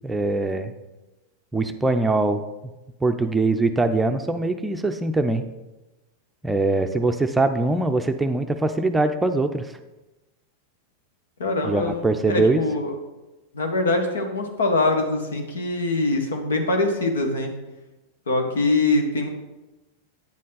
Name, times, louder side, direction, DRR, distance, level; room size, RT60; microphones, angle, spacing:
voice 1, 0.0-0.7 1.5-2.4 3.0-5.4 6.4-9.7 11.6-12.6, right 2 dB, 10° right, 7 dB, 0.6 m, -22 dB
voice 2, 11.4-12.9 13.5-17.5 18.3-19.3, left 2 dB, 75° left, 4 dB, 1.4 m, -23 dB
9.1 x 7.5 x 4.1 m, 1.1 s
hypercardioid pair, 95°, 0 cm